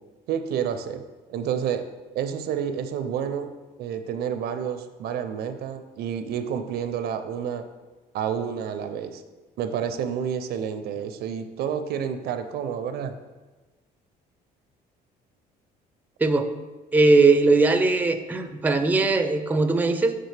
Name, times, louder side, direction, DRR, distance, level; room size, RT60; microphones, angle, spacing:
voice 1, 0.3-1.0 1.3-1.8 2.1-3.5 3.8-7.7 8.1-9.2 9.6-13.2, right 8 dB, 70° right, 9 dB, 0.5 m, -29 dB
voice 2, 16.9-20.1, right 3 dB, 10° right, 8 dB, 0.4 m, -20 dB
8.1 x 3.8 x 3.3 m, 1.2 s
cardioid pair, 110°, 17 cm